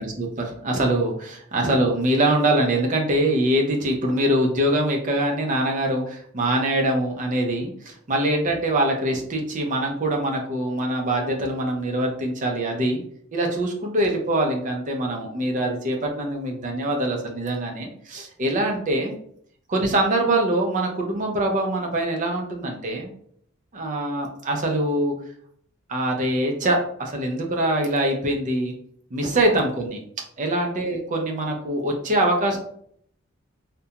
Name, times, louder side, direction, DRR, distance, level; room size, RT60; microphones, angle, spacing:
voice 1, 0.0-13.0 13.3-19.1 19.7-23.1 23.7-25.1 25.9-28.7 29.1-30.0 30.4-32.6, right 1 dB, 40° right, 1 dB, 0.5 m, -23 dB
2.4 x 2.2 x 2.8 m, 0.64 s
head